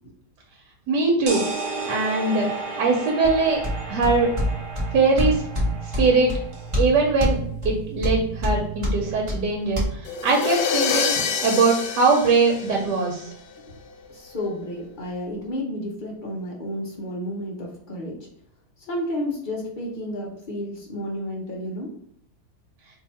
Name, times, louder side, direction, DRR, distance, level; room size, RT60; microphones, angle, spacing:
voice 1, 0.9-1.5 1.9-3.6 3.9-4.3 4.9-5.4 6.0-6.3 6.8-7.4 7.6-13.3, right 3 dB, 90° right, -2 dB, 1.3 m, -21 dB
sound 1, 1.3-6.8, right 3 dB, 70° right, 1.4 m, -33 dB
sound 2, 3.2-9.8, equal, 25° right, 0.9 m, -27 dB
sound 3, 10.1-13.3, left 6 dB, 85° left, 1.2 m, -26 dB
voice 2, 14.1-18.1 18.9-21.9, left 1 dB, 60° left, -2 dB, 0.5 m, -31 dB
2.8 x 2.6 x 4.1 m, 0.72 s
omnidirectional pair, 1.8 m